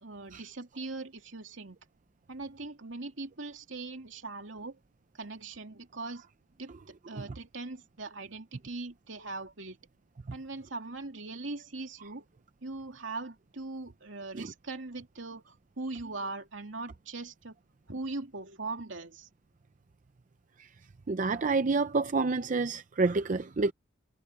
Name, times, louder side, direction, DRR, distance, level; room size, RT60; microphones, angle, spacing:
voice 1, 0.0-1.8 2.3-4.8 5.1-6.3 6.6-9.8 10.3-12.3 12.6-17.6 17.9-19.3, right 3 dB, 75° right, 2.8 m, -40 dB
voice 2, 21.1-23.7, right 3 dB, 40° right, 0.5 m, -28 dB
head